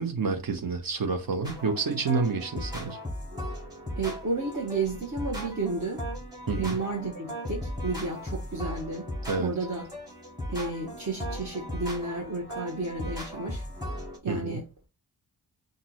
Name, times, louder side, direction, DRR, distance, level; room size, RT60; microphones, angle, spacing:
voice 1, 0.0-3.0 6.5-6.8 9.3-9.5 14.3-14.6, right 4 dB, 60° right, 1.0 m, -29 dB
sound 1, 1.4-14.2, equal, 10° right, 2.2 m, -37 dB
voice 2, 4.0-6.0 6.6-9.1 9.4-9.9 10.5-13.6 14.2-14.7, right 3 dB, 45° right, 1.3 m, -32 dB
5.8 x 2.7 x 3.0 m
wide cardioid pair, 85°, 39 cm